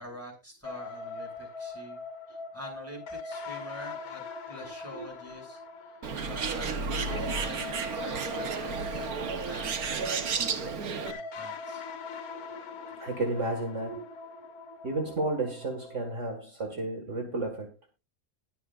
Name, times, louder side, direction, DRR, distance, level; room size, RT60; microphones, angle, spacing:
voice 1, 0.0-2.0 2.3-9.1 9.4-11.8, left 1 dB, 10° right, 7.1 m, -46 dB
sound 1, 0.6-16.2, left 4 dB, 80° left, 1.6 m, -42 dB
Bird, 6.0-11.1, right 5 dB, 85° right, 1.7 m, -32 dB
voice 2, 13.0-14.1 14.8-17.7, right 2 dB, 55° right, 2.3 m, -32 dB
21.0 x 7.0 x 2.5 m
omnidirectional pair, 1.5 m